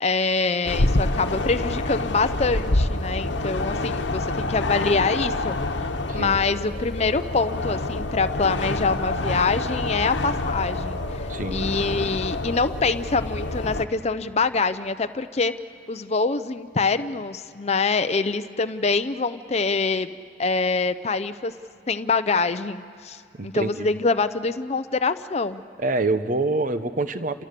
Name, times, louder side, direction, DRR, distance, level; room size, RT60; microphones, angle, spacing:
voice 1, 0.0-5.9 6.1-15.5 15.9-20.1 20.4-21.5 21.9-25.6, left 4 dB, 35° left, 10 dB, 0.6 m, -25 dB
sound 1, 0.6-13.8, left 2 dB, 80° left, 1.2 m, -27 dB
voice 2, 11.3-11.7 23.4-23.9 25.8-27.4, right 2 dB, 45° right, 11 dB, 0.8 m, -26 dB
30.0 x 27.5 x 6.8 m, 2.4 s
head